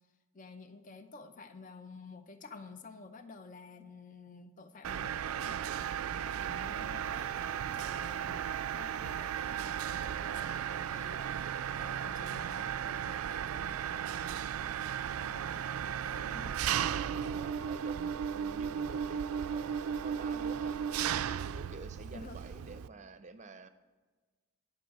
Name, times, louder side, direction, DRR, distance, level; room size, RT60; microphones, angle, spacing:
voice 1, 0.3-16.5 22.1-22.4, left 4 dB, 35° left, 9 dB, 0.5 m, -51 dB
Mechanisms, 4.8-22.9, right 8 dB, 85° right, 0.3 m, -35 dB
sound 1, 5.8-14.2, left 1 dB, 70° left, 2.2 m, -66 dB
voice 2, 17.3-20.8 21.5-23.7, right 3 dB, 35° right, 10 dB, 0.5 m, -49 dB
10.5 x 4.8 x 7.6 m, 1.3 s
head